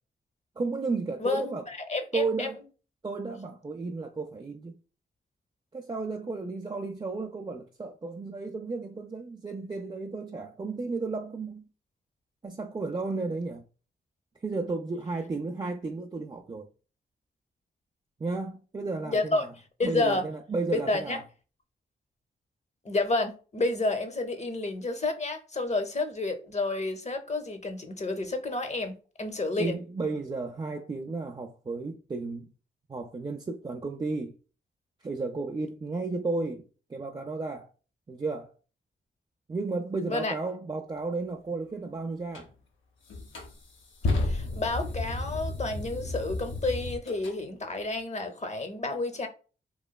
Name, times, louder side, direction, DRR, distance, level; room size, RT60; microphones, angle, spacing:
voice 1, 0.6-1.6 2.1-2.6 3.0-4.8 5.7-11.7 12.4-13.6 14.4-16.7 18.2-19.5 19.8-21.2 29.6-32.5 32.9-34.3 35.0-37.7 38.1-38.5 39.5-42.5, right 3 dB, 20° right, 0.4 m, -33 dB
voice 2, 1.2-2.5 19.0-19.5 19.8-20.2 20.7-21.2 22.8-29.8 40.1-40.3 44.2-49.3, left 2 dB, 35° left, 0.7 m, -30 dB
sound 1, 42.3-42.5 43.1-47.4, left 2 dB, 65° left, 0.7 m, -32 dB
3.0 x 2.2 x 2.2 m
supercardioid pair, 45°, 21 cm